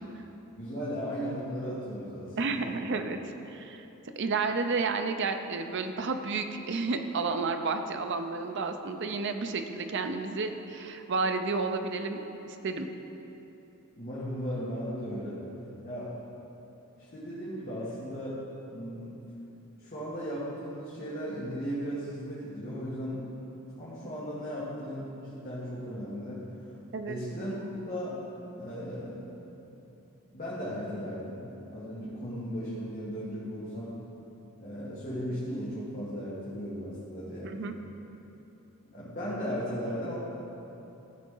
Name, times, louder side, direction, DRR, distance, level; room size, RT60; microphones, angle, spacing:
voice 1, 0.6-2.7 13.9-15.4 15.8-16.2 17.0-18.4 18.7-19.2 19.8-23.2 23.8-26.4 27.1-27.5 27.9-28.2 28.6-29.3 30.3-31.4 31.7-33.9 34.6-37.5 38.9-40.1, equal, 40° left, -10 dB, 1.6 m, -36 dB
voice 2, 2.4-3.2 3.5-3.9 4.2-12.2 12.5-12.9 26.9-27.2 37.4-37.8, right 4 dB, 55° right, 7 dB, 0.5 m, -31 dB
14.0 x 5.0 x 3.8 m, 3.0 s
head